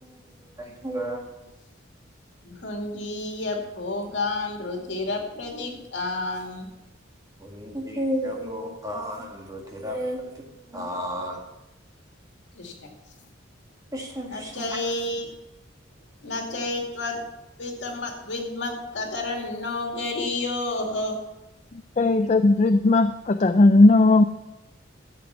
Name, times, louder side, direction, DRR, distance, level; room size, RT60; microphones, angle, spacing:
voice 1, 0.0-1.3 7.4-11.4 13.9-14.8, equal, 20° right, 0 dB, 1.8 m, -33 dB
voice 2, 2.4-6.7 12.6-12.9 14.3-15.3 16.2-17.2 17.6-21.2, left 2 dB, 65° left, 1 dB, 2.3 m, -30 dB
voice 3, 22.0-24.2, left 2 dB, 35° left, 9 dB, 0.4 m, -17 dB
12.0 x 8.0 x 5.7 m, 0.94 s
head